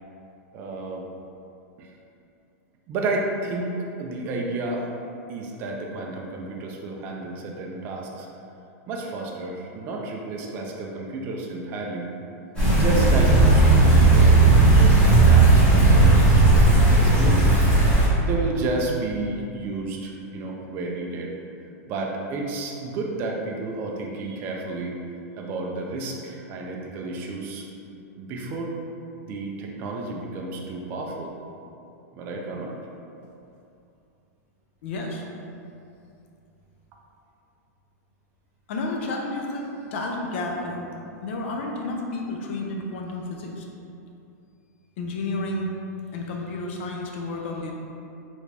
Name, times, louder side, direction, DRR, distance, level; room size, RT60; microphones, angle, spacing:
voice 1, 0.5-1.1 1.8-1.9 2.9-4.9 5.3-8.3 8.9-12.1 12.7-17.6 18.2-21.4 21.9-24.9 25.4-27.6 28.2-28.8 29.2-31.3 32.1-32.7, right 2 dB, 25° right, 0 dB, 0.3 m, -31 dB
sound 1, 12.6-18.1, right 2 dB, 15° left, 1.0 m, -15 dB
voice 2, 34.8-35.2 38.7-40.9 41.2-43.7 45.0-45.7 46.1-47.7, left 2 dB, 45° left, 0 dB, 0.5 m, -31 dB
3.3 x 2.5 x 3.2 m, 2.7 s
supercardioid pair, 170°, 9 cm